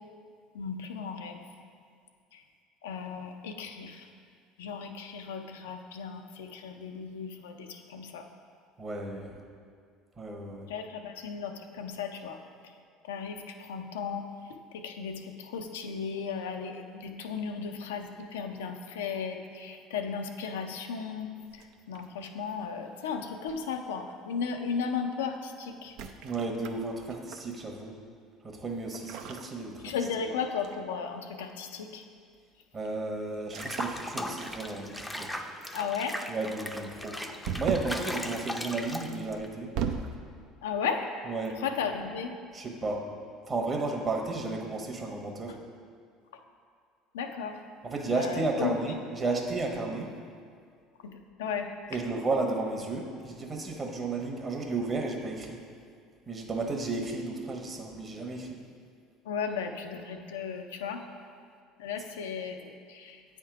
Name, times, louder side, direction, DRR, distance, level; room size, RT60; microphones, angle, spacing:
voice 1, 0.5-1.4 2.3-2.4 2.8-4.0 4.6-8.2 10.7-12.4 13.1-14.3 14.7-21.3 21.9-25.9 29.8-32.0 35.7-36.2 40.6-41.1 41.6-42.3 47.1-47.6 48.1-48.7 51.0-51.1 51.4-51.7 59.3-61.0 61.8-63.2, left 6 dB, 85° left, 4 dB, 0.5 m, -35 dB
voice 2, 8.8-9.4 10.2-10.7 26.2-28.0 28.4-29.9 32.7-35.3 36.3-37.2 37.6-39.7 41.2-41.6 42.5-43.0 43.5-45.6 47.8-50.1 51.9-55.6 56.3-58.6, right 3 dB, 35° right, 2 dB, 1.2 m, -33 dB
sound 1, 21.5-22.3 23.5-23.8 25.8-27.5 28.9-30.3 30.6-30.9 33.4-34.1 34.4-35.0 37.4-38.0 39.2-40.2, right 7 dB, 65° right, 0.4 m, -37 dB
Water / Bathtub (filling or washing), 33.6-39.5, equal, 5° left, 0.5 m, -38 dB
8.7 x 3.6 x 4.7 m, 2.2 s
hypercardioid pair, 75°, 0 cm